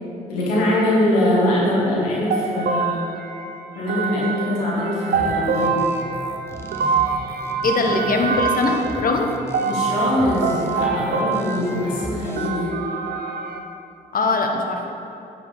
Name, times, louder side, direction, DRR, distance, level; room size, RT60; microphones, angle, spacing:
voice 1, 0.3-3.0 3.8-5.8 9.7-12.7, left 1 dB, 90° left, -5 dB, 1.9 m, -22 dB
sound 1, 2.3-13.6, right 5 dB, 55° right, 0.8 m, -25 dB
sound 2, 5.1-12.5, equal, 15° left, 1.2 m, -35 dB
voice 2, 7.6-9.3 14.1-14.9, left 3 dB, 45° left, 3 dB, 1.2 m, -21 dB
9.2 x 7.6 x 3.6 m, 2.8 s
hypercardioid pair, 45°, 19 cm